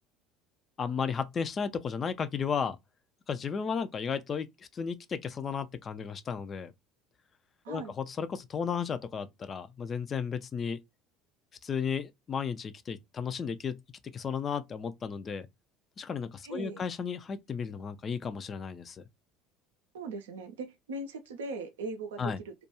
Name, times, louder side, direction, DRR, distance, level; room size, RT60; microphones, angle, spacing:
voice 1, 0.8-2.8 3.3-6.7 7.7-10.8 11.6-13.8 14.0-15.5 16.0-19.0 22.2-22.4, left 6 dB, 30° left, 0.3 m, -34 dB
voice 2, 16.4-16.9 19.9-22.5, right 3 dB, 70° right, 0.4 m, -39 dB
2.3 x 2.2 x 2.9 m
figure-of-eight pair, 65°, 0 cm